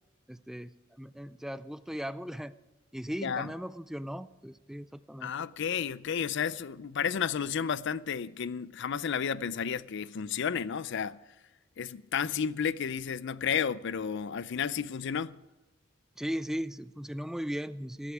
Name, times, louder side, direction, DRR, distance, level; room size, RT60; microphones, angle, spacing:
voice 1, 0.3-2.5 2.9-5.3 16.2-18.1, equal, ahead, 0.4 m, -37 dB
voice 2, 5.2-11.2 11.8-15.3, left 7 dB, 65° left, 0.5 m, -32 dB
17.0 x 11.5 x 4.8 m
head